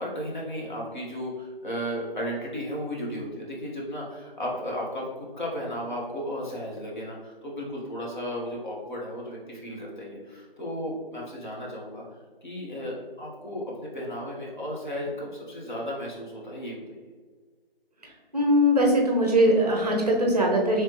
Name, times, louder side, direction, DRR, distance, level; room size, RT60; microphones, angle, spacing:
voice 1, 0.0-12.0 12.4-17.0, equal, 50° left, -3 dB, 1.1 m, -34 dB
voice 2, 18.3-20.8, equal, 40° right, 0 dB, 0.6 m, -21 dB
3.2 x 3.2 x 2.9 m, 1.5 s
figure-of-eight pair, 170°, 30 cm